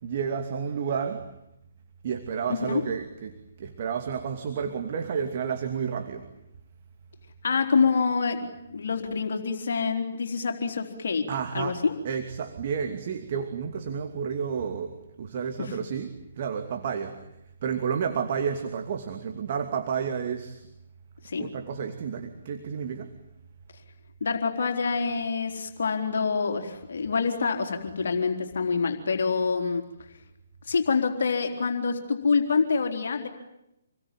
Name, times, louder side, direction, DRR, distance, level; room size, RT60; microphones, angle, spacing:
voice 1, 0.0-1.3 2.0-6.3 11.3-11.8 12.0-16.1 16.4-17.2 17.6-20.7 21.4-23.1, right 7 dB, 45° right, 6 dB, 2.7 m, -31 dB
voice 2, 2.5-2.8 7.4-11.3 11.5-12.0 15.6-15.8 21.2-21.5 24.2-29.8 30.7-33.3, left 5 dB, 60° left, 4 dB, 3.9 m, -26 dB
28.0 x 21.5 x 9.3 m, 0.84 s
figure-of-eight pair, 135°, 0 cm